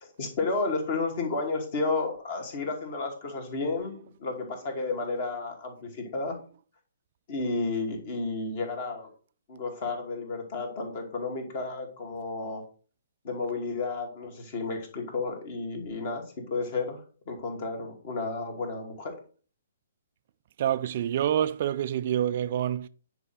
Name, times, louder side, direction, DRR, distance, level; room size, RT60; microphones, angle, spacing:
voice 1, 0.0-6.4 7.3-9.1 9.5-12.6 13.2-17.0 17.3-19.2, left 3 dB, 40° left, 2.5 m, -32 dB
voice 2, 20.6-22.9, right 10 dB, 40° right, 0.3 m, -27 dB
9.7 x 4.8 x 4.2 m
figure-of-eight pair, 125°, 0 cm